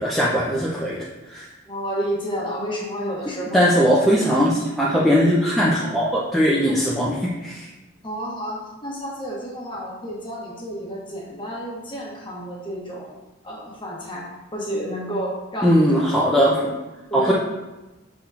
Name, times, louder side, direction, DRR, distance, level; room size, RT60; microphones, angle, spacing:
voice 1, 0.0-1.5 3.5-7.7 15.6-16.7 17.1-17.3, equal, ahead, -6 dB, 0.4 m, -20 dB
voice 2, 1.7-3.7 6.7-6.8 8.0-13.1 13.4-15.9 17.1-17.3, equal, 25° left, -4 dB, 1.1 m, -30 dB
5.9 x 3.6 x 2.3 m, 1.1 s
head